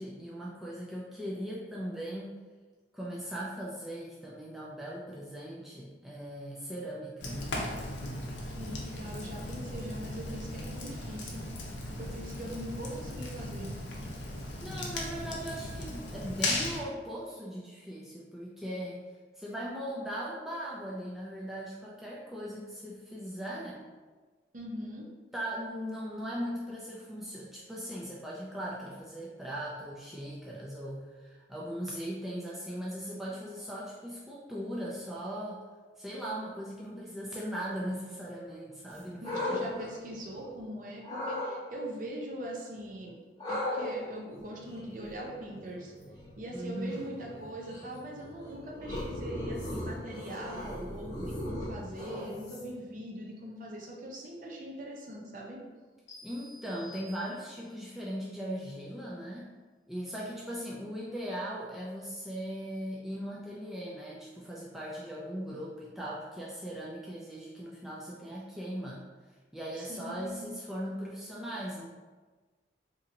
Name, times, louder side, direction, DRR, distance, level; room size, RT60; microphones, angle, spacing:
voice 1, 0.0-2.4 2.9-7.5 14.6-19.0 19.4-23.8 25.3-35.6 36.0-39.7 46.5-47.2 56.2-59.5 59.9-69.0 69.5-71.9, equal, ahead, -6 dB, 0.3 m, -39 dB
Fire, 7.2-16.8, left 2 dB, 80° left, 0.6 m, -37 dB
voice 2, 8.6-11.5 12.0-13.7 24.5-25.1 39.2-43.2 43.5-45.9 46.4-55.6 69.8-70.6, right 1 dB, 45° right, -1 dB, 0.6 m, -41 dB
sound 1, 38.9-40.6 41.0-41.5 43.4-52.9, left 1 dB, 20° left, 0.7 m, -38 dB
sound 2, 56.1-57.8, left 1 dB, 35° left, 1.0 m, -52 dB
3.9 x 2.8 x 2.6 m, 1.3 s
head